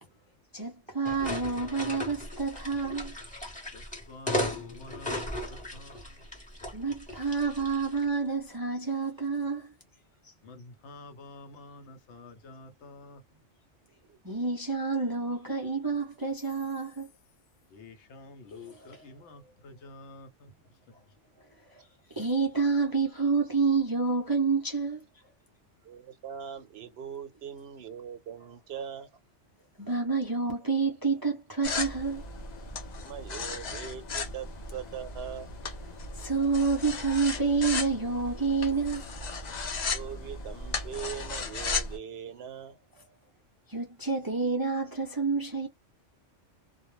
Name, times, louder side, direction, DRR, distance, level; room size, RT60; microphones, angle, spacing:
voice 1, 0.5-3.4 6.7-9.7 14.2-17.1 18.7-19.0 22.1-25.0 29.8-32.2 36.2-39.1 43.7-45.7, right 4 dB, 30° right, 0.4 m, -28 dB
sound 1, 1.0-8.1, left 1 dB, 5° left, 0.8 m, -36 dB
voice 2, 3.7-6.3 10.4-13.2 17.7-20.6, left 3 dB, 75° left, 0.9 m, -49 dB
voice 3, 25.8-29.1 33.0-35.5 39.9-42.8, right 8 dB, 65° right, 0.8 m, -41 dB
sound 2, 31.6-42.0, left 4 dB, 45° left, 0.6 m, -36 dB
2.3 x 2.0 x 3.0 m
omnidirectional pair, 1.2 m